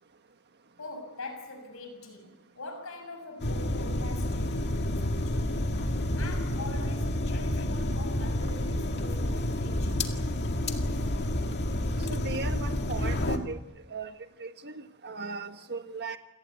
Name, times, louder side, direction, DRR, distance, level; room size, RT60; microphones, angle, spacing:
voice 1, 0.8-5.5 6.2-10.1, left 2 dB, 70° left, 6.8 m, -43 dB
sound 1, 3.4-13.4, left 1 dB, 50° left, 2.0 m, -29 dB
voice 2, 12.1-13.6 13.9-16.2, right 4 dB, 50° right, 1.5 m, -37 dB
28.5 x 18.5 x 8.2 m
head